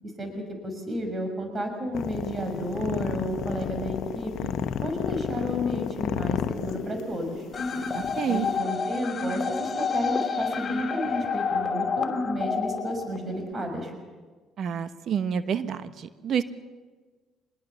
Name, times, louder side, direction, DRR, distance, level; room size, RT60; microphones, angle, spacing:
voice 1, 0.0-4.5 4.8-7.5 8.3-13.9, equal, 35° right, 5 dB, 6.0 m, -32 dB
sound 1, 1.9-8.6, left 9 dB, 60° left, 1.1 m, -32 dB
sound 2, 7.5-13.5, left 5 dB, 35° left, 2.8 m, -29 dB
voice 2, 8.2-8.5 14.6-16.4, right 8 dB, 55° right, 12 dB, 1.1 m, -28 dB
25.0 x 20.5 x 7.1 m, 1.4 s
hypercardioid pair, 55°, 0 cm